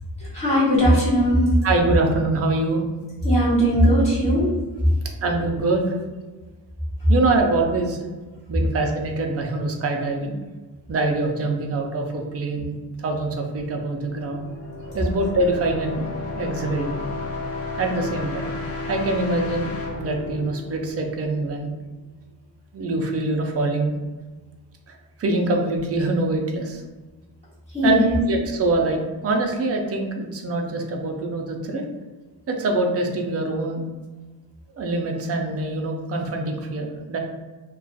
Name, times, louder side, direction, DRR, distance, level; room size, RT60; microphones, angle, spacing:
voice 1, 0.3-1.4 3.2-4.5 27.7-28.2, equal, 15° left, -10 dB, 1.2 m, -18 dB
voice 2, 1.6-2.8 5.2-6.0 7.1-8.0 8.5-10.4 10.9-12.7 13.0-14.5 14.9-16.1 16.4-17.0 17.8-18.5 18.9-21.7 22.7-23.9 25.2-26.8 27.8-31.8 32.5-33.8 34.7-37.2, right 2 dB, 35° right, 2 dB, 0.4 m, -24 dB
sound 1, 14.0-21.7, left 3 dB, 35° left, 0.5 m, -33 dB
2.4 x 2.3 x 3.8 m, 1.3 s
wide cardioid pair, 170°, 42 cm